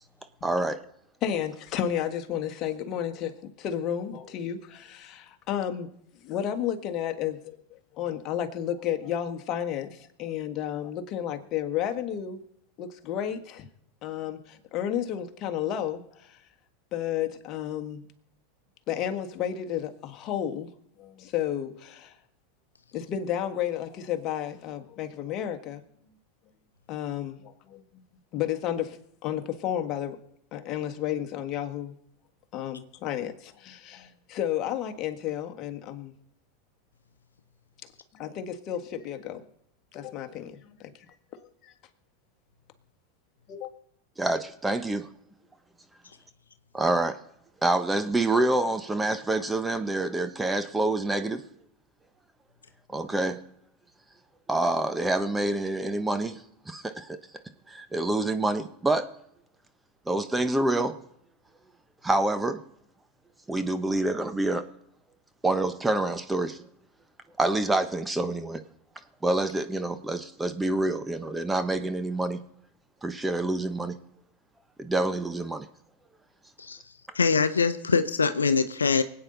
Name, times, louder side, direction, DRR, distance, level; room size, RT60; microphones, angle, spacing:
voice 1, 0.4-0.8 44.2-45.1 46.7-47.2 47.6-51.4 52.9-53.4 54.5-56.4 56.7-57.2 57.7-59.1 60.1-60.9 62.0-62.6 63.5-64.7 65.4-66.6 67.4-68.6 69.2-72.4 73.0-74.0 74.8-75.7, right 2 dB, 10° right, 9 dB, 1.0 m, -27 dB
voice 2, 1.2-5.9 6.2-12.4 12.8-13.7 14.0-16.4 16.9-18.0 18.9-20.7 21.0-22.1 22.9-25.8 26.9-28.0 28.3-30.2 30.5-31.9 32.5-36.1 38.1-39.4 39.9-40.6 41.4-41.7 43.5-43.7, left 10 dB, 45° left, 6 dB, 1.6 m, -32 dB
voice 3, 77.1-79.0, left 5 dB, 90° left, 10 dB, 0.7 m, -23 dB
24.5 x 9.0 x 4.0 m, 0.75 s
hypercardioid pair, 90°, 0 cm